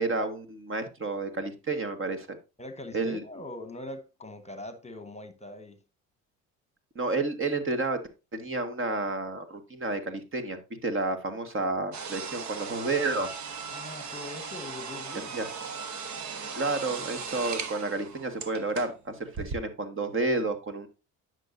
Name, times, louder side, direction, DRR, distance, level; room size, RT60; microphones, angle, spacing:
voice 1, 0.0-2.4 2.9-3.2 6.9-8.0 8.3-13.3 15.3-15.5 16.5-20.9, right 3 dB, 35° right, 1.6 m, -30 dB
voice 2, 2.6-5.8 13.7-15.4, left 2 dB, 20° left, 1.2 m, -42 dB
sound 1, 11.9-19.0 19.3-19.6, right 5 dB, 55° right, 1.3 m, -38 dB
9.8 x 6.3 x 2.6 m
supercardioid pair, 70°, 35 cm